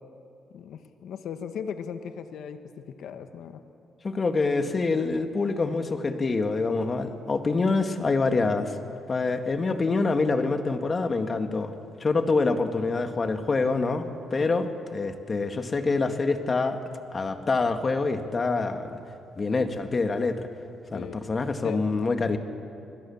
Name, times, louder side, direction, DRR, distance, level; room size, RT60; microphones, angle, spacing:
voice 1, 0.5-3.6 14.4-14.5 20.9-21.3 21.6-21.9, left 7 dB, 75° left, 8 dB, 1.5 m, -37 dB
voice 2, 4.0-8.7 9.1-11.7 12.0-14.7 14.9-16.8 17.1-18.9 19.4-20.5 20.9-22.4, left 3 dB, 35° left, 6 dB, 2.0 m, -26 dB
28.5 x 21.0 x 7.3 m, 2.6 s
cardioid pair, 90°, 0 cm